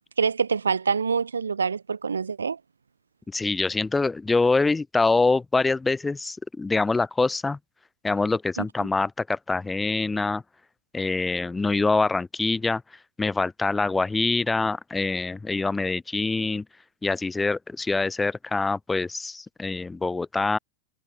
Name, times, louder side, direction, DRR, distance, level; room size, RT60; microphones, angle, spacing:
voice 1, 0.2-2.6 8.6-8.7, right 5 dB, 75° right, 0.5 m, -25 dB
voice 2, 3.3-7.6 8.0-10.4 10.9-12.8 13.2-16.6 17.0-20.6, left 3 dB, 10° left, 0.3 m, -25 dB
figure-of-eight pair, 90°, 0 cm